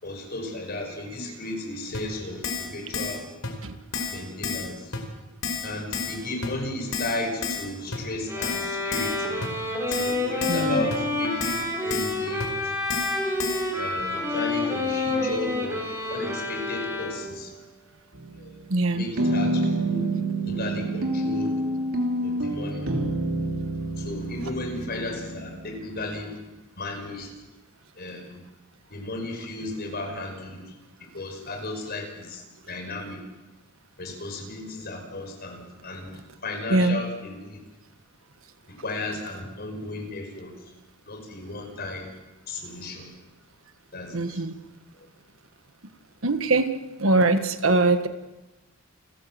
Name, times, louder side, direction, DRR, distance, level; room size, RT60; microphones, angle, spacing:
voice 1, 0.0-3.3 4.1-5.0 5.6-9.4 9.9-12.7 13.7-17.6 18.3-18.6 18.9-20.1 20.5-21.6 22.2-23.0 24.0-26.4 26.8-27.3 28.0-28.4 28.9-30.7 31.0-33.2 34.0-37.6 38.7-40.5 41.1-42.1 42.5-43.1 43.9-44.4 44.9-45.1, left 2 dB, 50° left, 3 dB, 5.6 m, -34 dB
Keyboard (musical), 1.9-2.0 2.4-2.7 2.9-3.2 3.4-3.5 3.9-4.2 4.4-4.7 4.9-5.0 5.4-5.7 5.9-6.2 6.4-6.5 6.9-7.2 7.4-7.6 7.9-8.0 8.4-8.6 8.9-9.2 9.4-9.5 9.9-10.1 10.4-10.6 10.9-11.0 11.4-11.6 11.9-12.1 12.4-12.5 12.9-13.1 13.4-13.6, left 5 dB, 80° left, 4.7 m, -30 dB
sound 1, 8.3-17.5, left 2 dB, 15° right, 5.5 m, -28 dB
voice 2, 10.5-10.9 18.7-19.1 36.7-37.0 44.1-44.5 46.2-46.7 47.0-48.1, right 2 dB, 70° right, 9 dB, 1.4 m, -22 dB
sound 2, 18.1-18.7 19.2-26.1, right 1 dB, 85° right, 3.1 m, -28 dB
29.5 x 13.5 x 7.8 m, 1.1 s
head